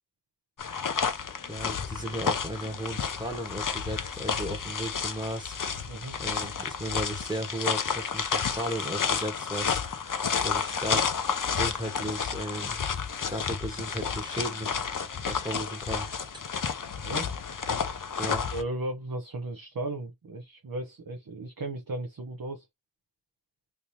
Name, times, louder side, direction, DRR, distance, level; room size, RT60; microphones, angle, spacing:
sound 1, 0.6-18.6, left 6 dB, 45° left, 0.6 m, -31 dB
voice 1, 1.5-5.6 6.2-9.8 10.4-11.2 11.5-12.8 13.3-14.7 14.9-16.1 18.2-18.4, right 1 dB, 10° right, 1.3 m, -35 dB
voice 2, 5.9-6.2 17.0-17.3 18.5-22.6, right 2 dB, 50° right, 0.8 m, -35 dB
3.4 x 2.8 x 2.8 m
wide cardioid pair, 70°, 44 cm